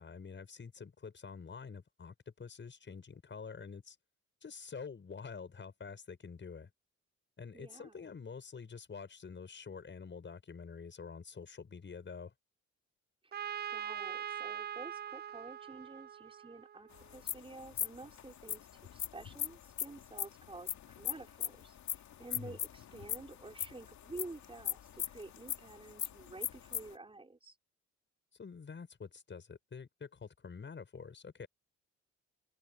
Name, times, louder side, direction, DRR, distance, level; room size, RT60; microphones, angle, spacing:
voice 1, 0.0-4.0 4.4-6.7 7.4-12.3 22.3-22.6 28.3-31.5, left 5 dB, 40° left, 7.7 m, -47 dB
voice 2, 7.5-8.1 13.2-13.3 13.7-27.6, right 2 dB, 20° right, 5.2 m, -50 dB
Trumpet, 13.3-17.0, right 9 dB, 35° right, 0.5 m, -42 dB
sound 1, 16.9-26.9, left 10 dB, 70° left, 2.5 m, -40 dB
cardioid pair, 90°, 30 cm